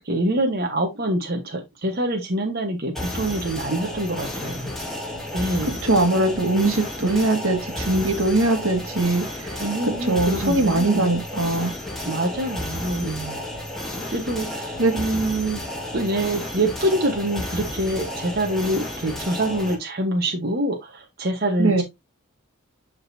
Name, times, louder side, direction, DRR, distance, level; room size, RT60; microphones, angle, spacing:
voice 1, 0.0-4.7 5.3-5.8 7.0-7.2 9.6-11.1 12.0-13.4 14.1-15.6 15.9-21.8, right 1 dB, 45° right, 1.2 m, -25 dB
sound 1, 2.9-19.7, left 1 dB, ahead, 2.1 m, -32 dB
voice 2, 5.8-11.7 14.8-14.9 21.6-21.8, right 2 dB, 70° right, 1.8 m, -21 dB
11.0 x 4.0 x 2.8 m
head